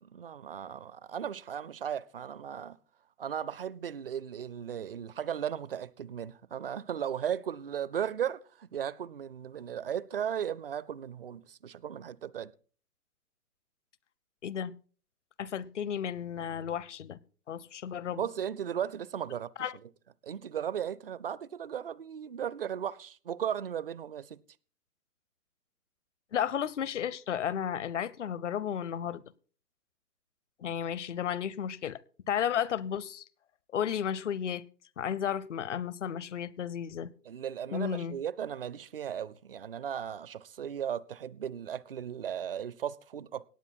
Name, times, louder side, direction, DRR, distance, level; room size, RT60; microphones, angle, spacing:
voice 1, 0.0-2.8 3.2-12.5 18.2-19.5 20.2-24.4 37.3-43.4, right 9 dB, 40° right, 0.5 m, -36 dB
voice 2, 14.4-14.7 15.4-17.2 17.5-18.2 19.6-19.8 26.3-29.2 30.6-32.0 32.3-33.2 33.7-34.6 35.0-37.1 37.7-38.2, left 9 dB, 50° left, 0.7 m, -33 dB
18.0 x 8.9 x 4.2 m
figure-of-eight pair, 140°, 46 cm